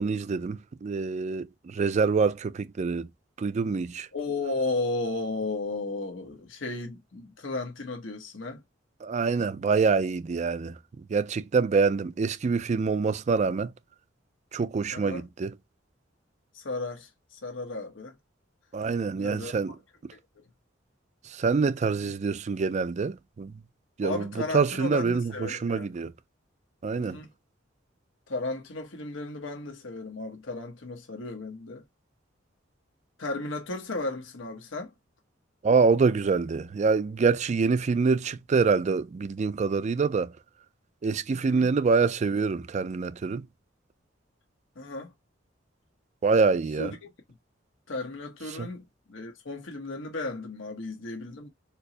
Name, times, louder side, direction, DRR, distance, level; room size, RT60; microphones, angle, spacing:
voice 1, 0.0-3.1 3.4-4.1 9.0-10.8 11.1-13.7 14.5-15.5 18.7-19.7 21.4-23.5 24.0-24.3 24.5-26.1 26.8-27.2 35.6-40.3 41.0-43.4 46.2-46.9 48.6-48.7, right 4 dB, 40° right, 0.3 m, -25 dB
voice 2, 4.1-8.6 14.9-15.3 16.5-18.2 19.2-19.7 20.1-20.5 24.0-25.9 27.0-27.3 28.3-31.8 33.2-34.9 41.3-41.7 44.7-45.1 46.8-47.1 47.9-51.5, left 2 dB, 90° left, 1.0 m, -35 dB
4.4 x 2.1 x 2.6 m
head